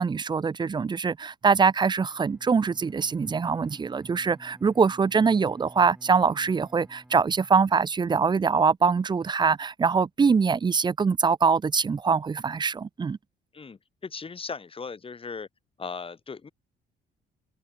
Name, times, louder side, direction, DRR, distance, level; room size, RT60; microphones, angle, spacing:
voice 1, 0.0-13.2, right 5 dB, 20° right, 0.4 m, -23 dB
Bowed string instrument, 2.1-8.1, right 1 dB, 5° right, 2.1 m, -53 dB
voice 2, 13.5-15.5 15.8-16.5, left 5 dB, 25° left, 0.9 m, -38 dB
cardioid pair, 90°, 20 cm